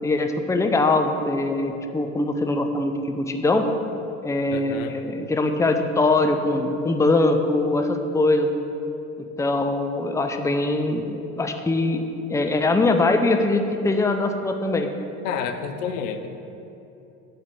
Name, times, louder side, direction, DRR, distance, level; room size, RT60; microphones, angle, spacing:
voice 1, 0.0-3.7 4.2-8.5 9.4-12.0 12.3-14.9, left 2 dB, 10° left, 6 dB, 0.7 m, -22 dB
voice 2, 4.5-5.0 15.2-16.3, left 7 dB, 70° left, 7 dB, 0.8 m, -29 dB
9.0 x 4.9 x 6.9 m, 2.8 s
hypercardioid pair, 70°, 40 cm